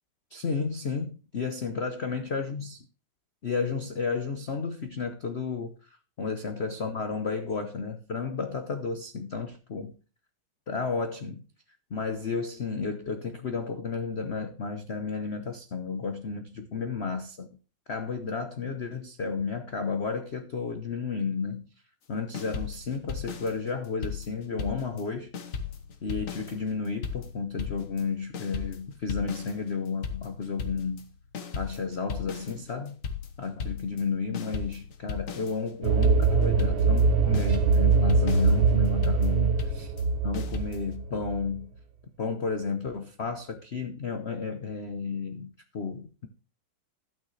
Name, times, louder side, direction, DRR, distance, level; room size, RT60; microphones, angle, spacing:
voice 1, 0.3-2.8 3.4-9.9 10.7-11.4 11.9-17.5 17.9-21.7 22.1-25.3 26.0-31.1 31.5-33.0 33.4-39.9 40.2-41.7 42.2-46.3, left 5 dB, 70° left, 0.6 m, -32 dB
sound 1, 22.3-25.1 25.3-41.0, left 6 dB, 45° left, 1.3 m, -37 dB
sound 2, 35.8-41.4, right 5 dB, 70° right, 1.6 m, -23 dB
12.5 x 9.0 x 3.2 m
omnidirectional pair, 2.4 m